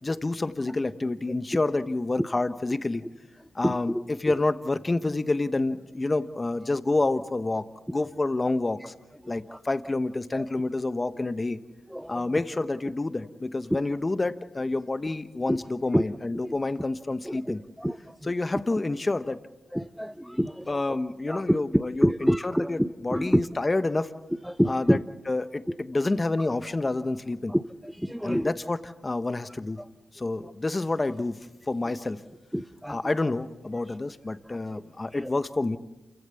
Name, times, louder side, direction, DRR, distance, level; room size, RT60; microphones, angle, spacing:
voice 1, 0.0-3.0 3.5-7.7 7.9-8.9 9.3-11.6 12.1-17.6 18.3-19.4 20.7-22.8 23.0-24.1 24.7-25.0 25.3-27.5 28.2-29.8 30.1-31.4 31.7-32.2 32.9-35.8, left 2 dB, 30° left, 12 dB, 1.1 m, -28 dB
voice 2, 3.6-4.0 9.2-9.6 10.3-10.5 11.9-12.2 15.5-15.6 15.9-16.0 16.4-16.5 17.2-18.3 19.7-20.8 21.3-23.4 24.4-25.0 27.5-28.5 29.8-29.9 30.4-30.5 32.5-33.0 34.5-34.6 35.1-35.3, equal, ahead, 9 dB, 0.7 m, -27 dB
28.0 x 15.5 x 7.1 m, 1.1 s
supercardioid pair, 50°, 0 cm